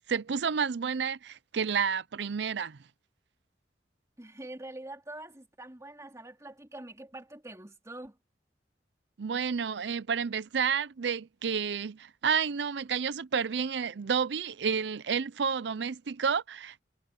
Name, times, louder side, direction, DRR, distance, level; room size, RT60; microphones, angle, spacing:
voice 1, 0.1-2.8 9.2-16.8, right 6 dB, 80° right, 0.5 m, -30 dB
voice 2, 4.2-8.2, right 1 dB, 15° right, 2.8 m, -45 dB
head